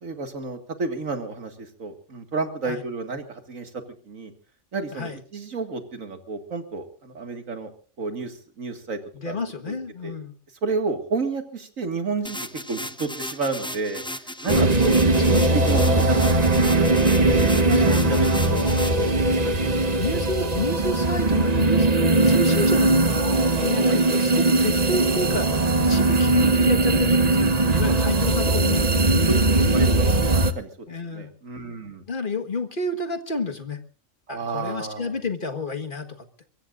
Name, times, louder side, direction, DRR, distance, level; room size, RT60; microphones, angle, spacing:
voice 1, 0.0-4.3 4.7-7.7 8.0-9.0 9.2-9.4 9.6-9.7 10.0-10.1 10.6-12.4 12.7-14.9 15.2-16.7 17.0-18.3 18.6-18.7 19.4-19.6 23.8-24.0 28.4-28.6 29.7-32.0 34.3-35.2, right 4 dB, 90° right, 6 dB, 2.4 m, -31 dB
voice 2, 9.1-10.3 14.4-14.9 17.2-18.8 19.8-28.8 30.9-31.3 32.1-33.8 34.3-36.3, left 2 dB, 40° left, 6 dB, 1.7 m, -30 dB
sound 1, 12.2-19.1, equal, 5° left, 0.7 m, -35 dB
sound 2, 14.5-30.5, right 2 dB, 35° right, 1.1 m, -20 dB
23.0 x 22.5 x 2.6 m, 0.39 s
omnidirectional pair, 1.3 m